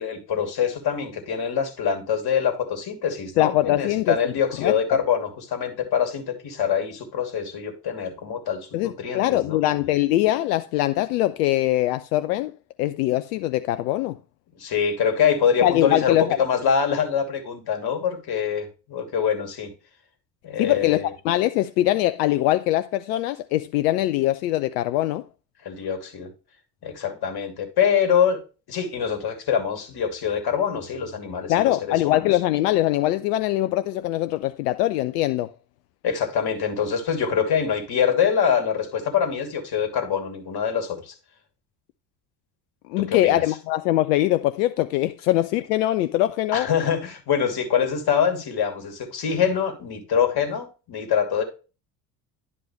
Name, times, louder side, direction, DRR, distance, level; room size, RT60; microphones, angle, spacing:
voice 1, 0.0-9.6 14.6-19.7 20.4-21.1 25.6-26.3 26.8-28.4 28.7-32.3 36.0-41.1 43.0-43.4 46.5-51.4, left 7 dB, 50° left, 2.8 m, -24 dB
voice 2, 3.4-4.2 4.6-4.7 8.7-12.5 12.8-14.2 15.6-16.4 20.6-21.0 21.2-25.2 31.5-35.5 42.9-46.7, left 15 dB, 70° left, 0.7 m, -22 dB
10.5 x 5.4 x 3.1 m
figure-of-eight pair, 55°, 49 cm